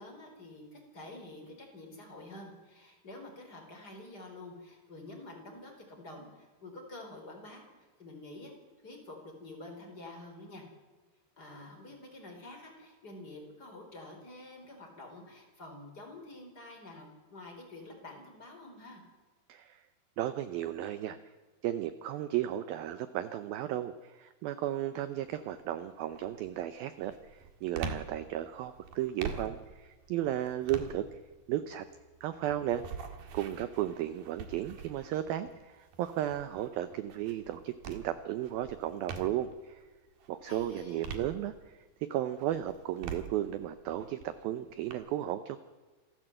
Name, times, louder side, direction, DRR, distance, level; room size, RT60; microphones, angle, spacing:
voice 1, 0.0-8.5 8.8-10.6 11.4-19.0 40.4-41.1, left 2 dB, 20° left, 2 dB, 4.2 m, -48 dB
voice 2, 19.5-19.8 20.2-21.2 21.6-31.0 31.5-31.9 32.2-32.8 33.3-39.8 40.3-41.5 42.1-45.6, right 12 dB, 80° right, 11 dB, 2.2 m, -34 dB
sound 1, 25.2-25.6 26.1-39.6 40.1-41.9 42.3-44.9, right 5 dB, 60° right, 3.3 m, -45 dB
27.0 x 15.0 x 7.8 m, 1.3 s
omnidirectional pair, 5.1 m